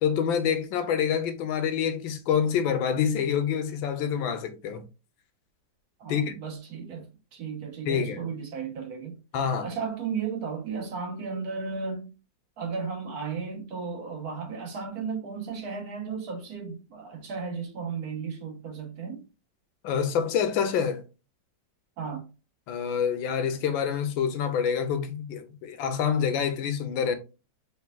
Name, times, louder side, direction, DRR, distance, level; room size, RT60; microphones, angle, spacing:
voice 1, 0.0-4.8 6.1-6.3 7.9-8.2 9.3-9.7 19.8-21.0 22.7-27.2, left 7 dB, 90° left, 1.4 m, -27 dB
voice 2, 6.0-7.1 7.3-9.2 9.6-12.1 12.6-19.2 22.0-22.3, right 5 dB, 55° right, 1.4 m, -34 dB
4.4 x 3.7 x 2.2 m
omnidirectional pair, 2.1 m